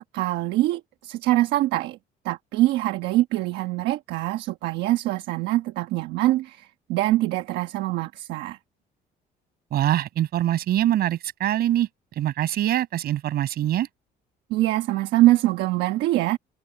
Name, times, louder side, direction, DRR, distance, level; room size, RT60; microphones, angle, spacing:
voice 1, 0.0-2.0 2.2-8.6 14.5-16.4, right 16 dB, 85° right, 1.2 m, -24 dB
voice 2, 9.7-11.9 12.2-13.9, right 12 dB, 65° right, 6.0 m, -23 dB
cardioid pair, 110°, 17 cm